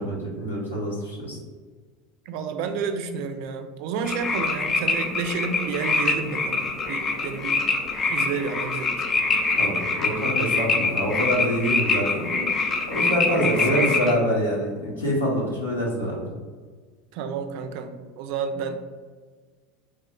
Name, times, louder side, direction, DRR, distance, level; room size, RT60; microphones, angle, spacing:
voice 1, 0.0-1.4 9.6-12.4 12.9-16.3, equal, 85° left, -4 dB, 0.9 m, -25 dB
voice 2, 2.3-7.6 8.1-8.9 13.4-14.0 17.1-18.9, right 5 dB, 55° right, 7 dB, 0.3 m, -30 dB
sound 1, 4.0-14.1, left 3 dB, 30° left, 0.5 m, -25 dB
3.1 x 2.1 x 3.6 m, 1.5 s
figure-of-eight pair, 75°, 0 cm